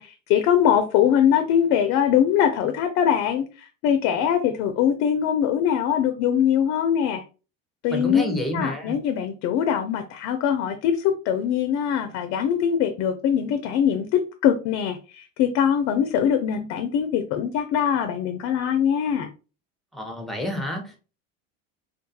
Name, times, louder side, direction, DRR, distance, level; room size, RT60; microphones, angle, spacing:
voice 1, 0.0-7.2 7.8-19.3, left 9 dB, 55° left, 0.4 m, -22 dB
voice 2, 7.9-9.0 19.9-21.0, equal, ahead, 0.6 m, -29 dB
2.3 x 2.3 x 2.6 m
supercardioid pair, 110°, 30 cm